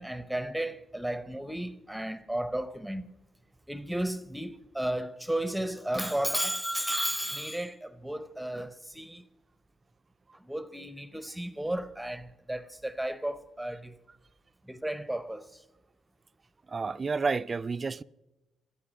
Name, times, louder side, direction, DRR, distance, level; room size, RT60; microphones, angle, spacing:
voice 1, 0.0-3.1 3.7-9.2 10.5-13.9 14.7-15.6, right 1 dB, 5° right, 0.7 m, -33 dB
voice 2, 16.7-18.0, right 4 dB, 30° right, 0.4 m, -30 dB
16.0 x 13.0 x 6.3 m
cardioid pair, 90°, 0 cm